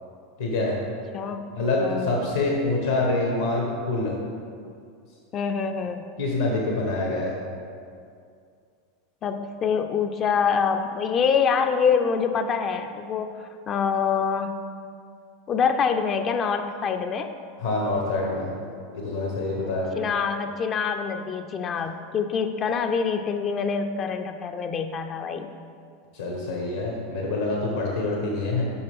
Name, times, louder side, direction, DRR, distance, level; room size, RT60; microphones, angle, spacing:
voice 1, 0.4-0.8 1.5-4.2 6.2-7.4 17.6-18.5 18.9-19.9 26.1-28.6, left 2 dB, 80° left, -2 dB, 1.0 m, -26 dB
voice 2, 1.1-1.5 1.8-2.1 5.3-6.1 9.2-14.6 15.5-17.3 19.6-25.5, left 6 dB, 35° left, 7 dB, 0.3 m, -25 dB
7.0 x 5.5 x 3.5 m, 2.3 s
hypercardioid pair, 85°, 0 cm